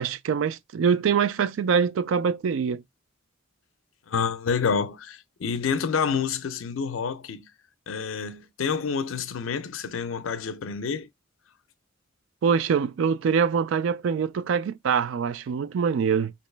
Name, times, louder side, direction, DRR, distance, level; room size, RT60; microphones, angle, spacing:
voice 1, 0.0-2.8 12.4-16.3, right 6 dB, 70° right, 0.3 m, -24 dB
voice 2, 4.1-7.5 7.9-11.1, left 6 dB, 90° left, 0.5 m, -28 dB
3.0 x 2.9 x 3.2 m
head